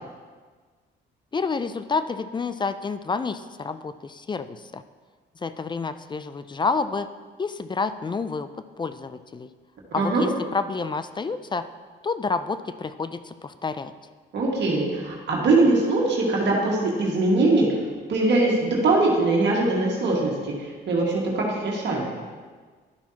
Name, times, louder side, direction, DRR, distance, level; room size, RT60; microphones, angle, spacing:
voice 1, 1.3-4.8 5.4-7.1 7.4-8.5 8.8-9.5 9.9-11.7 12.0-13.9, left 4 dB, 25° left, 12 dB, 0.4 m, -29 dB
voice 2, 14.3-17.7 18.1-20.3 20.6-22.1, right 2 dB, 60° right, -3 dB, 1.9 m, -22 dB
12.0 x 5.8 x 2.9 m, 1.5 s
cardioid pair, 90°, 20 cm